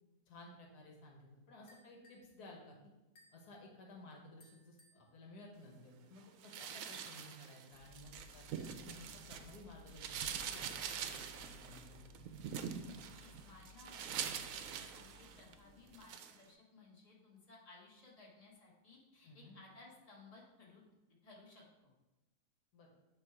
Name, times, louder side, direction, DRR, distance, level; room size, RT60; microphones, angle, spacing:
voice 1, 0.3-2.9 3.3-12.2 19.2-19.6 22.7-22.9, left 2 dB, 80° left, 0 dB, 1.6 m, -56 dB
sound 1, 1.7-2.3 3.1-3.5 4.4-5.0 6.6-7.3 8.2-8.9, left 1 dB, 40° left, 1.1 m, -66 dB
sound 2, 6.4-9.6 9.9-15.5 15.9-16.4, right 8 dB, 70° right, 0.9 m, -44 dB
sound 3, 7.7-16.0, left 3 dB, 55° left, 1.4 m, -60 dB
voice 2, 12.8-20.8 21.2-21.9, left 3 dB, 25° left, -4 dB, 1.5 m, -60 dB
9.0 x 3.1 x 4.8 m, 1.0 s
omnidirectional pair, 1.7 m